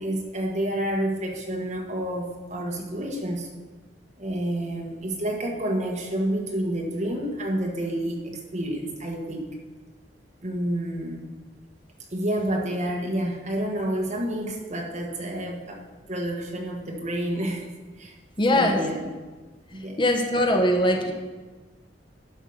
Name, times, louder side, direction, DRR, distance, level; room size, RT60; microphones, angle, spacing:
voice 1, 0.0-3.5 4.2-9.5 10.4-11.3 12.1-17.7 18.0-18.2 18.5-19.1 19.7-20.0, right 1 dB, 40° right, 1 dB, 1.4 m, -29 dB
voice 2, 18.4-18.8 20.0-21.1, left 1 dB, 25° left, 3 dB, 0.9 m, -21 dB
11.0 x 5.4 x 6.5 m, 1.3 s
head